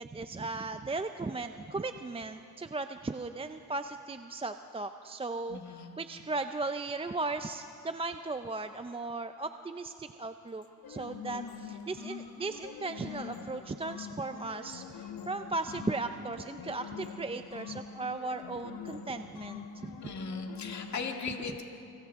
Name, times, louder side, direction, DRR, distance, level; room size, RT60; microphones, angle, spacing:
voice 1, 0.0-19.9, right 3 dB, 15° right, 9 dB, 0.4 m, -37 dB
voice 2, 5.5-5.9 20.0-21.6, left 5 dB, 45° left, 3 dB, 1.8 m, -38 dB
sound 1, 10.8-21.0, left 7 dB, 70° left, 1.3 m, -44 dB
29.0 x 25.5 x 3.6 m, 2.8 s
cardioid pair, 115°, 38 cm